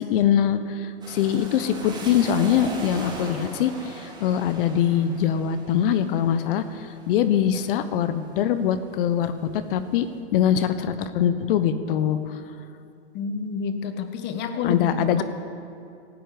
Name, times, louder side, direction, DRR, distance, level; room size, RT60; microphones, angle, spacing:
voice 1, 0.0-10.1 10.3-12.4 14.6-15.2, left 9 dB, 50° left, 12 dB, 1.1 m, -23 dB
sound 1, 1.0-8.7 9.1-9.9, right 2 dB, 10° right, 2.7 m, -40 dB
voice 2, 13.1-15.2, left 5 dB, 30° left, 8 dB, 1.4 m, -29 dB
18.0 x 13.0 x 5.1 m, 2.6 s
hypercardioid pair, 120°, 35 cm